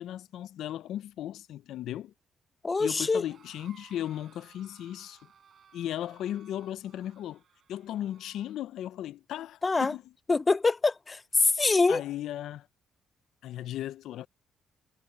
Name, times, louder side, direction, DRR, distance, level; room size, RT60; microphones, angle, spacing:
voice 1, 0.0-2.1 2.8-5.2 5.7-7.4 7.7-10.0 11.9-12.7 13.4-14.3, left 12 dB, 80° left, 0.5 m, -36 dB
voice 2, 2.6-3.2 9.6-9.9 10.3-12.0, left 3 dB, 25° left, 0.5 m, -24 dB
sound 1, 3.1-8.6, right 7 dB, 55° right, 4.5 m, -59 dB
cardioid pair, 90°, 0 cm